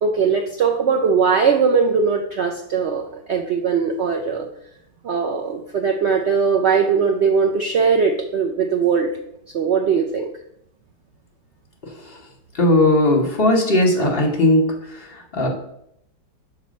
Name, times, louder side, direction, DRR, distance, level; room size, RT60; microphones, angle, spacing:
voice 1, 0.0-4.5 5.0-9.1 9.5-10.3, right 5 dB, 85° right, 3 dB, 0.6 m, -20 dB
voice 2, 12.5-15.5, left 1 dB, 40° left, 0 dB, 1.1 m, -18 dB
6.2 x 3.1 x 5.1 m, 0.73 s
omnidirectional pair, 1.8 m